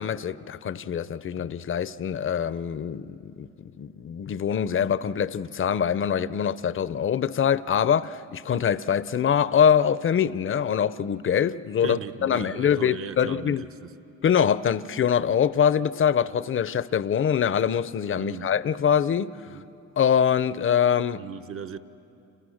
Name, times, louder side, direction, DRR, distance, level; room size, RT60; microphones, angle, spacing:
voice 1, 0.0-3.5 3.8-13.7 14.2-19.3 20.0-21.2, left 8 dB, 45° left, 0.7 m, -24 dB
voice 2, 11.8-13.9 18.1-18.5 19.5-19.6 21.1-21.8, right 6 dB, 50° right, 1.0 m, -37 dB
29.0 x 28.5 x 6.5 m
cardioid pair, 90°, 30 cm